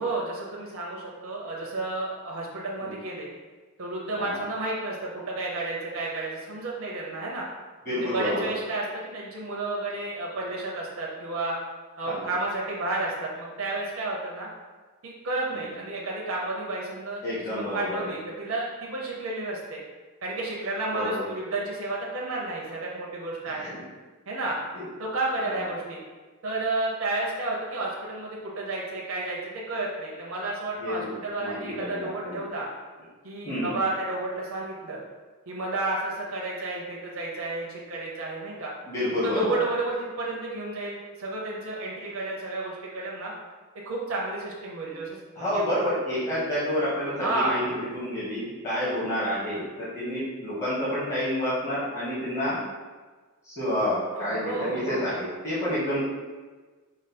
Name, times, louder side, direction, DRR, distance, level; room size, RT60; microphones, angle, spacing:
voice 1, 0.0-3.3 3.8-7.5 8.0-11.5 12.0-14.5 15.0-19.8 20.2-23.7 24.3-24.6 25.0-26.0 26.4-32.7 33.2-35.0 35.5-38.7 39.2-43.3 43.8-45.6 47.2-47.6 54.3-55.1, right 2 dB, 65° right, -3 dB, 0.8 m, -31 dB
voice 2, 7.8-8.5 12.1-12.3 15.5-15.7 17.2-18.1 20.9-21.2 23.5-23.8 24.7-24.9 25.4-25.6 30.8-31.1 31.4-32.4 33.4-33.8 38.9-39.6 45.3-52.6 53.4-56.0, left 1 dB, 35° left, -11 dB, 1.4 m, -29 dB
5.0 x 2.0 x 4.2 m, 1.3 s
head